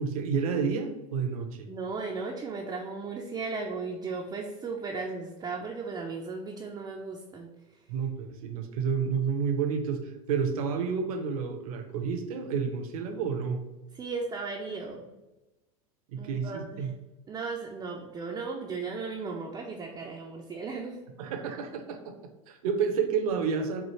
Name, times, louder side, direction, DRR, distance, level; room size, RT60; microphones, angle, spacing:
voice 1, 0.0-1.7 7.9-13.6 16.1-16.9 21.2-22.1 22.5-23.8, right 6 dB, 70° right, 5 dB, 0.7 m, -30 dB
voice 2, 1.7-7.9 13.9-15.2 16.2-16.9 17.3-21.1, right 4 dB, 20° right, 0 dB, 0.4 m, -36 dB
4.5 x 2.4 x 3.0 m, 1.1 s
hypercardioid pair, 105°, 19 cm